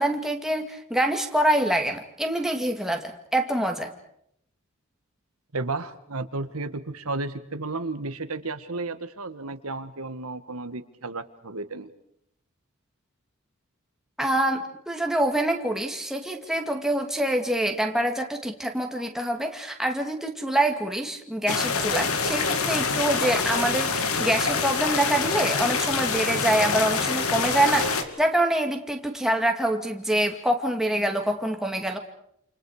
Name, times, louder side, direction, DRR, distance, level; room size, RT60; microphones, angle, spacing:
voice 1, 0.0-3.9 14.2-32.0, right 1 dB, ahead, 3 dB, 2.4 m, -25 dB
voice 2, 5.5-11.9, right 3 dB, 85° right, 9 dB, 1.7 m, -33 dB
sound 1, 21.5-28.0, left 4 dB, 80° left, 2.5 m, -25 dB
29.0 x 28.5 x 5.0 m, 0.72 s
head